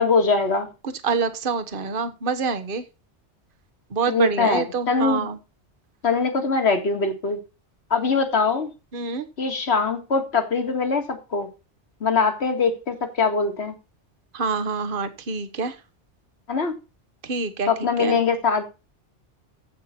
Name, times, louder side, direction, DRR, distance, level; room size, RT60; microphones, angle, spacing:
voice 1, 0.0-0.7 4.1-5.3 6.0-7.4 7.9-8.7 9.4-11.5 12.0-13.7 16.5-16.7 17.7-18.7, left 4 dB, 65° left, 2.1 m, -22 dB
voice 2, 0.8-2.8 3.9-5.4 8.9-9.2 14.3-15.8 17.2-17.7 18.0-18.2, right 4 dB, 50° right, 1.3 m, -26 dB
15.0 x 5.7 x 4.3 m
omnidirectional pair, 1.2 m